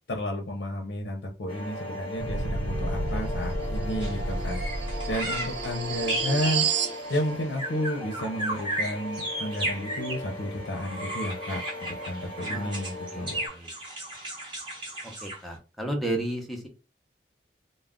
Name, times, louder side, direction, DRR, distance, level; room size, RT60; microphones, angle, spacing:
voice 1, 0.1-4.6 5.1-6.7 7.1-13.4, equal, 70° left, 2 dB, 0.6 m, -32 dB
sound 1, 1.5-13.5, left 2 dB, 30° left, 0.9 m, -39 dB
sound 2, 2.2-7.0, right 4 dB, 80° right, 0.5 m, -30 dB
sound 3, 4.0-4.1 4.5-10.3 10.7-15.5, right 1 dB, 25° right, 1.0 m, -34 dB
voice 2, 12.5-12.8 13.1-13.7 15.2-16.7, right 1 dB, ahead, 1 dB, 0.6 m, -33 dB
2.2 x 2.0 x 3.5 m, 0.30 s
head